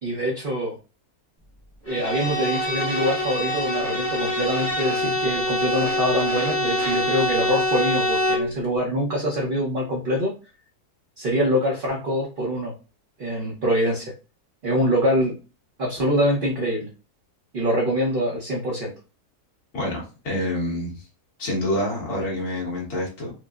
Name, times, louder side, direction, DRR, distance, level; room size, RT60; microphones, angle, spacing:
voice 1, 0.0-0.8 1.8-10.3 11.2-12.7 13.2-14.1 14.6-15.4 15.8-16.9 17.5-18.9, equal, 45° right, -3 dB, 0.7 m, -24 dB
Bowed string instrument, 1.9-8.5, left 1 dB, 10° left, 0.9 m, -25 dB
voice 2, 19.7-21.0 21.4-23.3, left 1 dB, 70° left, -4 dB, 2.0 m, -27 dB
4.8 x 2.0 x 2.4 m, 0.33 s
omnidirectional pair, 1.7 m